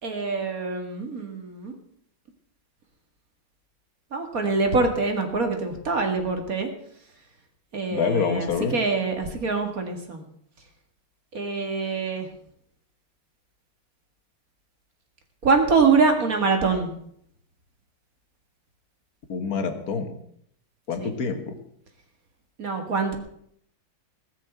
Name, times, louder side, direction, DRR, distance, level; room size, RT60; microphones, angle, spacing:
voice 1, 0.0-1.7 4.1-6.7 7.7-10.2 11.3-12.3 15.4-16.9 21.0-21.1 22.6-23.1, right 4 dB, 40° right, 4 dB, 2.3 m, -24 dB
voice 2, 7.9-8.8 19.3-20.2 20.9-21.6, left 5 dB, 45° left, 5 dB, 1.9 m, -26 dB
18.5 x 6.6 x 7.8 m, 0.70 s
omnidirectional pair, 2.4 m